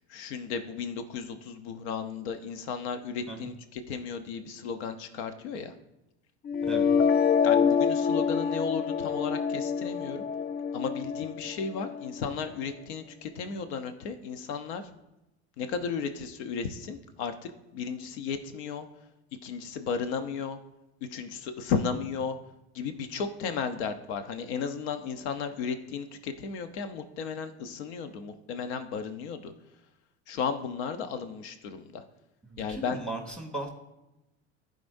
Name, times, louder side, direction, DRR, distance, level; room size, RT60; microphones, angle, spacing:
voice 1, 0.1-5.7 7.4-10.3 10.7-14.8 15.6-18.9 19.4-20.6 21.1-22.4 22.7-29.5 30.3-32.0 32.6-33.0, left 6 dB, 75° left, 9 dB, 0.9 m, -34 dB
sound 1, 6.5-12.4, left 6 dB, 30° left, 0.4 m, -26 dB
voice 2, 32.4-33.7, right 2 dB, 5° left, 0 dB, 2.9 m, -37 dB
15.5 x 5.2 x 2.7 m, 0.94 s
hypercardioid pair, 80°, 34 cm